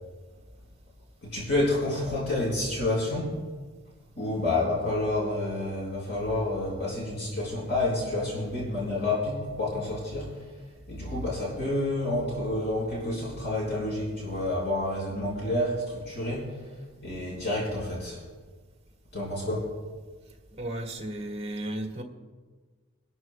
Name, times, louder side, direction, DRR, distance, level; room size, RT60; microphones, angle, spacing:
voice 1, 1.2-3.4 4.2-10.4 10.9-16.6 17.0-18.2 19.1-19.7, left 2 dB, 50° left, -5 dB, 4.2 m, -29 dB
voice 2, 20.5-22.0, right 1 dB, 30° right, 1 dB, 1.7 m, -34 dB
26.0 x 12.5 x 2.2 m, 1.4 s
head